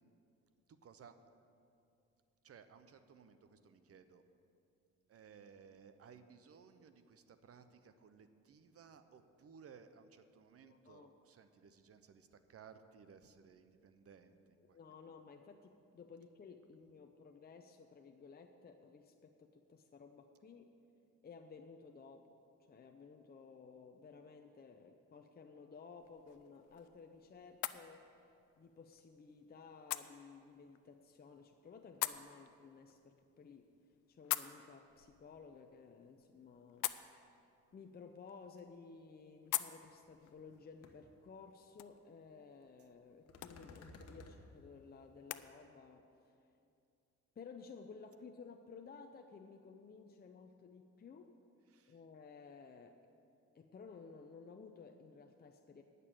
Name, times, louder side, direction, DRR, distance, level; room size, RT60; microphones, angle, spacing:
voice 1, 0.7-1.1 2.4-4.2 5.1-15.0 51.7-52.0, right 6 dB, 50° right, 10 dB, 0.8 m, -60 dB
voice 2, 10.6-11.1 14.6-20.7 21.2-22.4 22.7-28.2 28.6-33.7 34.1-36.9 37.7-46.4 47.4-51.3 51.9-53.0 53.5-55.8, left 5 dB, 30° left, 5 dB, 0.6 m, -56 dB
sound 1, 26.0-45.5, left 15 dB, 85° left, 0.5 m, -47 dB
sound 2, 39.8-39.9 40.3-40.6 40.8-40.9 43.3-44.4, left 2 dB, 55° left, 1.3 m, -55 dB
9.9 x 6.8 x 9.0 m, 2.6 s
cardioid pair, 90°, 30 cm